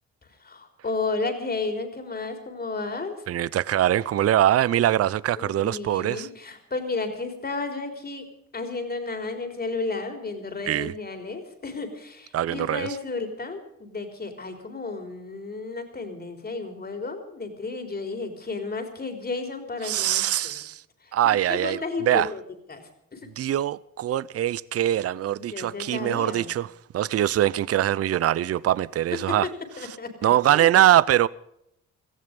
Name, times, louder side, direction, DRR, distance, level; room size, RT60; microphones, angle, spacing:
voice 1, 0.4-3.2 5.4-8.2 8.5-20.6 21.0-21.1 21.5-22.4 22.7-22.8 23.1-23.2 25.5-26.5 29.3-29.5 29.8-30.7, left 3 dB, 30° left, 3.9 m, -32 dB
voice 2, 3.3-6.3 10.7-10.9 12.3-13.0 19.8-20.8 21.1-22.3 23.4-26.7 26.9-29.5 30.2-31.3, right 12 dB, 50° right, 0.6 m, -23 dB
17.5 x 14.5 x 5.3 m
cardioid pair, 90°, 30 cm